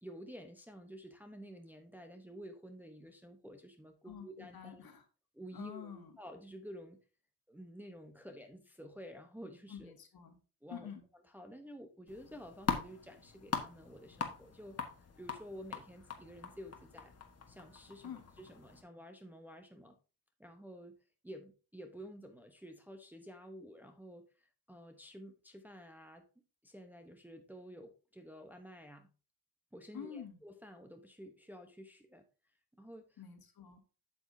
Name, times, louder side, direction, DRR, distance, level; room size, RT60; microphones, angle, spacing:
voice 1, 0.0-4.9 5.3-7.0 7.5-9.9 10.6-10.9 11.3-14.9 15.2-17.1 17.5-20.0 20.4-21.0 21.2-26.3 26.6-29.1 29.7-32.2 32.8-33.2, equal, 5° right, 4 dB, 0.9 m, -51 dB
voice 2, 4.0-5.0 5.5-6.2 9.7-10.4 10.7-11.0 18.0-18.3 29.9-30.4 33.2-33.8, left 8 dB, 55° left, 5 dB, 2.0 m, -48 dB
sound 1, 12.1-18.8, left 6 dB, 35° left, 1.5 m, -42 dB
8.1 x 7.8 x 2.7 m, 0.34 s
cardioid pair, 110°, 44 cm